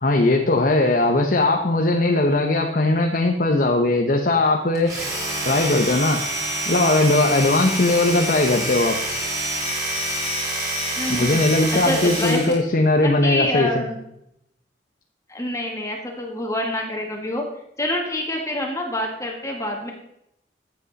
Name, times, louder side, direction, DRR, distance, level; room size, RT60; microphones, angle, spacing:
voice 1, 0.0-4.9 5.4-6.2 6.7-9.0 11.2-13.8, left 2 dB, 50° left, 3 dB, 1.0 m, -19 dB
Domestic sounds home sounds, 4.7-12.6, right 1 dB, 20° right, 5.5 m, -27 dB
voice 2, 11.0-11.4 11.7-12.6 13.0-14.0 15.3-17.4 17.8-19.9, left 1 dB, 20° left, 0 dB, 2.0 m, -26 dB
14.5 x 8.2 x 4.2 m, 0.78 s
head